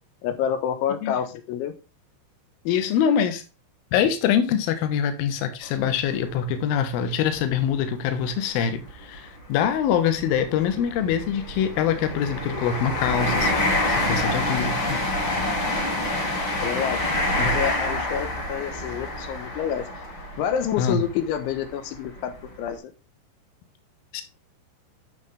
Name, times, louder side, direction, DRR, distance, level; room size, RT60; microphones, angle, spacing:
voice 1, 0.2-1.7 16.6-17.1 17.4-19.9 20.4-22.3 22.6-22.8, left 9 dB, 85° left, 3.6 m, -28 dB
voice 2, 2.7-3.4 3.9-15.0 17.4-17.5 20.8-21.0 24.1-24.2, left 8 dB, 65° left, 2.7 m, -24 dB
sound 1, 5.6-5.8 6.4-6.5 7.6-7.8 8.0-8.2 8.9-21.6 22.2-22.3, left 1 dB, 35° left, 2.2 m, -27 dB
9.5 x 6.3 x 3.4 m
omnidirectional pair, 5.3 m